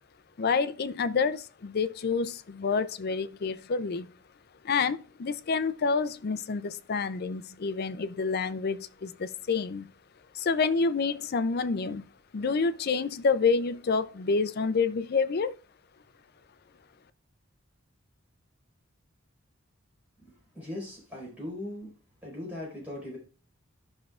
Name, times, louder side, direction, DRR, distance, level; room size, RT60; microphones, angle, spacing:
voice 1, 0.4-4.1 4.6-9.9 10.3-12.1 12.3-15.6, left 4 dB, 50° left, 0.4 m, -28 dB
voice 2, 20.2-21.9 22.2-23.2, left 1 dB, 10° right, 4.5 m, -39 dB
14.5 x 6.1 x 2.4 m
head